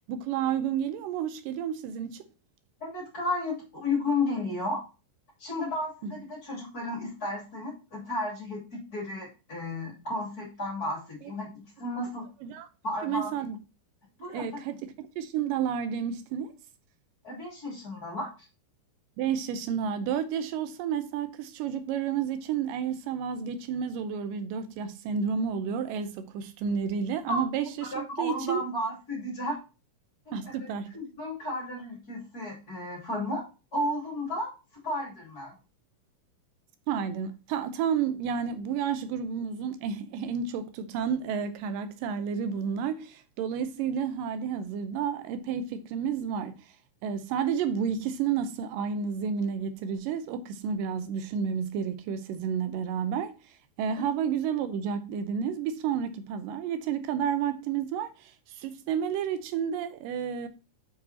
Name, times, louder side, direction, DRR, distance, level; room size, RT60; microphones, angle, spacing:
voice 1, 0.1-2.2 12.4-12.7 13.0-13.6 14.3-16.5 19.2-28.6 30.3-30.9 36.9-46.5 47.0-53.3 53.8-60.5, right 7 dB, 85° right, 2.4 m, -31 dB
voice 2, 2.8-4.8 5.4-11.5 11.8-12.3 12.8-13.5 14.2-14.5 17.2-18.3 27.3-27.4 27.8-29.6 30.3-30.7 30.9-33.4 33.7-34.5 34.8-35.5, left 2 dB, 30° left, 2.9 m, -33 dB
6.5 x 4.8 x 4.1 m
omnidirectional pair, 3.8 m